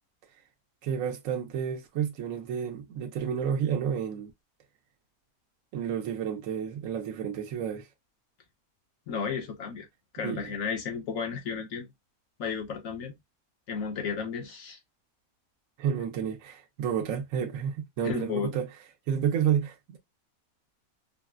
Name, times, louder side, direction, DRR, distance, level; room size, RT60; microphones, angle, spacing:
voice 1, 0.8-4.3 5.7-7.9 10.2-10.5 15.8-18.7 19.1-20.0, right 8 dB, 70° right, 1.1 m, -30 dB
voice 2, 9.1-9.9 10.1-11.9 12.4-13.1 13.7-14.8 18.0-18.5, left 6 dB, 70° left, 1.3 m, -33 dB
4.1 x 2.0 x 2.3 m
omnidirectional pair, 1.5 m